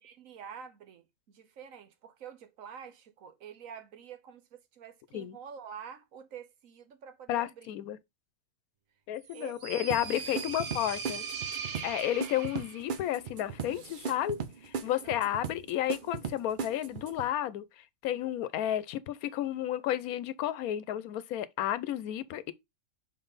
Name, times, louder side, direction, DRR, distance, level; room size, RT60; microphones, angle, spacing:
voice 1, 0.0-7.7 9.3-10.9 12.2-12.3 15.0-15.3, right 7 dB, 70° right, 1.3 m, -48 dB
voice 2, 7.3-8.0 9.1-11.2 11.8-14.4 14.6-22.5, left 12 dB, 90° left, 1.1 m, -32 dB
sound 1, 9.2-13.0, right 6 dB, 90° right, 1.6 m, -40 dB
sound 2, 9.9-17.3, right 6 dB, 50° right, 0.7 m, -38 dB
5.4 x 4.5 x 3.9 m
omnidirectional pair, 1.5 m